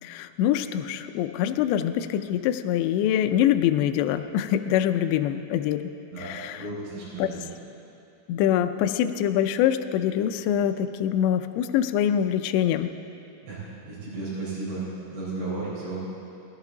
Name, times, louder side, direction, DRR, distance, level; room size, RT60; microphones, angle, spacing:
voice 1, 0.0-6.7 7.2-7.3 8.3-12.9, left 10 dB, 90° left, 8 dB, 2.5 m, -24 dB
voice 2, 6.1-7.5 13.4-16.0, right 3 dB, 85° right, -9 dB, 6.7 m, -34 dB
20.0 x 14.0 x 3.8 m, 2.8 s
omnidirectional pair, 5.7 m